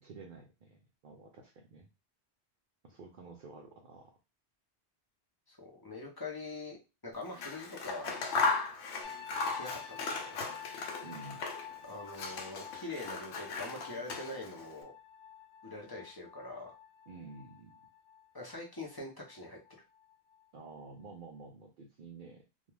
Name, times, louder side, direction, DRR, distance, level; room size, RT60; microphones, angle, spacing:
voice 1, 0.0-1.9 2.8-4.1 11.0-11.5 17.1-17.8 20.5-22.4, right 3 dB, 60° right, 0 dB, 0.6 m, -50 dB
voice 2, 5.5-6.8 7.0-8.2 9.5-10.4 11.8-14.9 15.6-16.7 18.3-19.6, left 2 dB, 25° left, -2 dB, 0.5 m, -43 dB
Scissors, 7.3-11.8 12.1-14.6, left 4 dB, 90° left, 0.9 m, -36 dB
sound 1, 9.0-20.7 21.0-21.5, left 8 dB, 60° left, 0.8 m, -50 dB
2.3 x 2.2 x 3.1 m, 0.28 s
omnidirectional pair, 1.1 m